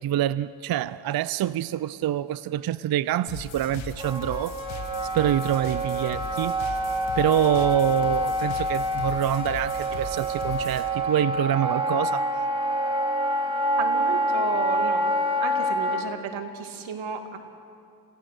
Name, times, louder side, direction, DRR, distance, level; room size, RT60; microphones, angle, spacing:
voice 1, 0.0-4.6 5.1-6.8 7.1-12.3, right 11 dB, 50° right, 17 dB, 0.5 m, -26 dB
sound 1, 3.3-10.9, left 5 dB, 80° left, 2.1 m, -39 dB
Wind instrument woodwind instrument, 4.0-16.1, equal, 10° right, 1.8 m, -27 dB
voice 2, 13.8-15.1 15.4-17.4, right 6 dB, 90° right, 5 dB, 2.1 m, -33 dB
27.0 x 16.5 x 6.6 m, 2.5 s
cardioid pair, 100°, 46 cm